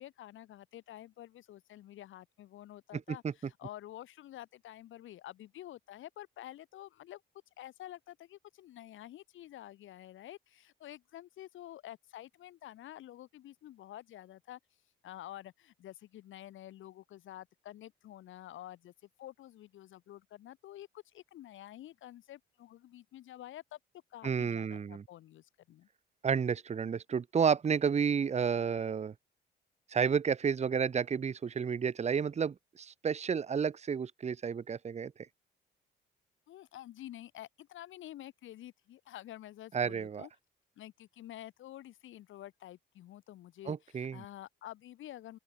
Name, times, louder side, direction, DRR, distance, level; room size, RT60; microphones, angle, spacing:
voice 1, 0.0-7.2 7.6-14.6 15.0-18.9 19.2-23.8 24.1-25.9 36.5-40.3 40.8-45.4, left 13 dB, 80° left, 3.3 m, -49 dB
voice 2, 24.2-25.0 26.2-29.1 29.9-35.1 39.7-40.3 43.7-44.2, right 6 dB, 35° right, 0.9 m, -31 dB
open air
cardioid pair, 90°, 20 cm